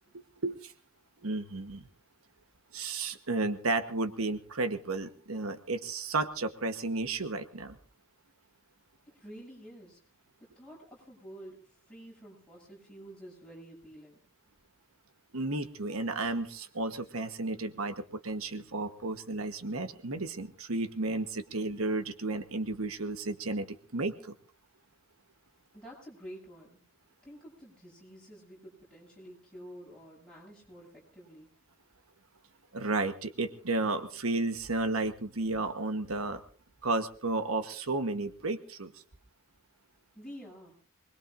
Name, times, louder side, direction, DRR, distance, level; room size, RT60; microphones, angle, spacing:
voice 1, 1.2-1.8 2.7-7.8 15.3-23.7 23.9-24.3 32.7-36.4 36.8-38.9, right 3 dB, 90° right, 9 dB, 1.2 m, -33 dB
voice 2, 9.1-10.0 10.5-14.2 25.7-26.8 27.2-31.5 40.1-40.7, equal, 5° left, -4 dB, 7.8 m, -49 dB
24.5 x 21.0 x 2.6 m, 0.43 s
head